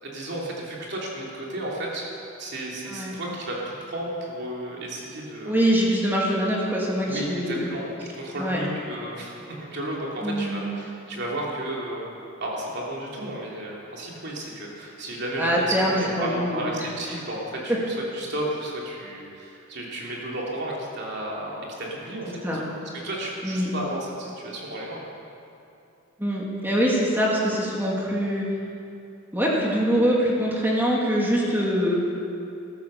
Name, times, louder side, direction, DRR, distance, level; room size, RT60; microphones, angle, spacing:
voice 1, 0.0-2.1 2.4-5.5 6.3-6.4 7.1-12.1 12.4-22.7 23.0-25.0, right 1 dB, 55° right, -3 dB, 3.2 m, -33 dB
voice 2, 5.5-7.7 8.4-8.6 10.2-10.7 15.4-16.7 17.7-17.8 22.4-22.6 23.4-23.7 26.2-28.5 29.3-32.0, equal, 10° right, -4 dB, 2.1 m, -24 dB
14.5 x 13.5 x 6.9 m, 2.7 s
head